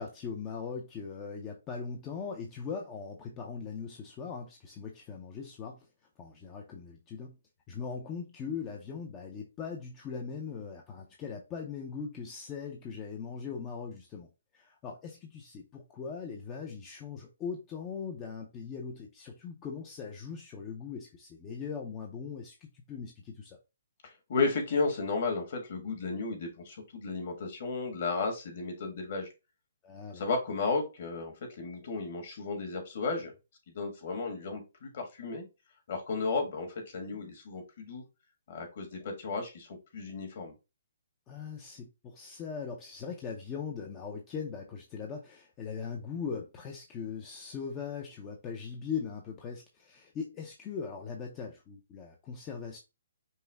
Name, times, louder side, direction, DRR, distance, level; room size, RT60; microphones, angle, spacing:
voice 1, 0.0-5.9 6.2-7.4 7.7-23.6 29.8-30.2 37.1-37.3 41.3-52.8, left 6 dB, 15° left, 0.4 m, -40 dB
voice 2, 24.3-29.3 30.1-33.3 33.7-35.4 35.9-38.0 38.5-40.5, left 4 dB, 45° left, 1.3 m, -33 dB
5.4 x 2.0 x 3.3 m
hypercardioid pair, 170°, 0 cm